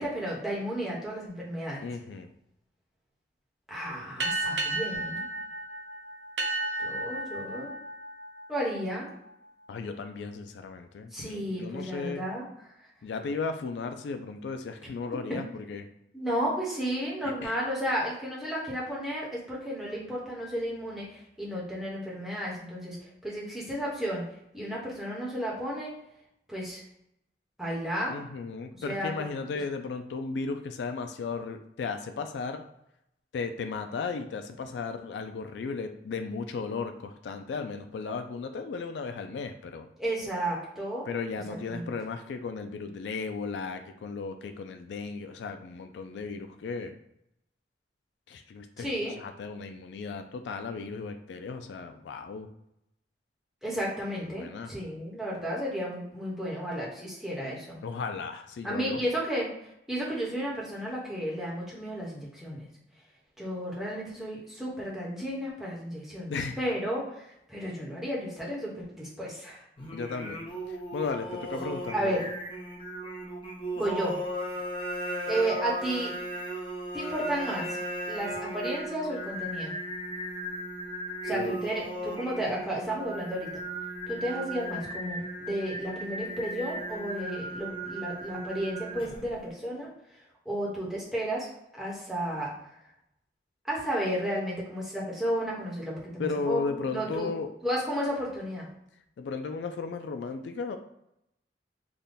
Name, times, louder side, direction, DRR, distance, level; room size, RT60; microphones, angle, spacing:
voice 1, 0.0-1.8 3.7-5.2 6.8-7.7 8.5-9.1 11.1-12.4 15.3-15.4 16.1-24.3 24.5-25.9 26.5-26.8 27.6-28.2 28.8-29.3 40.0-41.1 41.7-41.9 48.8-49.1 53.6-57.8 58.6-59.5 59.9-62.7 63.4-69.6 71.9-72.2 73.7-74.2 75.3-76.1 76.9-77.7 78.1-79.7 81.2-83.5 84.1-89.9 90.5-91.5 91.7-92.5 93.7-97.3 97.6-98.6, equal, ahead, -5 dB, 1.0 m, -33 dB
voice 2, 1.8-2.3 9.7-12.2 13.0-15.9 17.2-17.6 28.1-32.6 33.3-39.9 41.1-47.0 48.3-48.9 49.2-52.5 54.2-54.7 57.8-59.0 66.3-66.6 69.9-72.2 81.3-81.6 96.2-97.5 99.2-100.8, left 4 dB, 75° left, 7 dB, 0.3 m, -35 dB
sound 1, 4.2-9.3, right 2 dB, 75° right, 0.5 m, -33 dB
Singing, 69.8-89.4, right 1 dB, 30° left, 0.7 m, -36 dB
3.6 x 2.2 x 3.9 m, 0.80 s
head